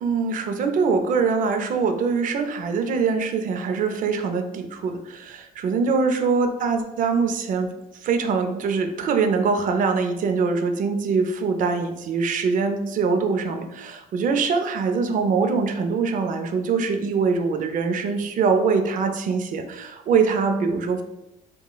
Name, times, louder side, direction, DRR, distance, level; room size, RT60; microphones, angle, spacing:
voice 1, 0.0-7.7 8.0-21.0, right 5 dB, 50° right, 6 dB, 0.5 m, -23 dB
4.8 x 2.2 x 2.2 m, 0.91 s
cardioid pair, 110°, 17 cm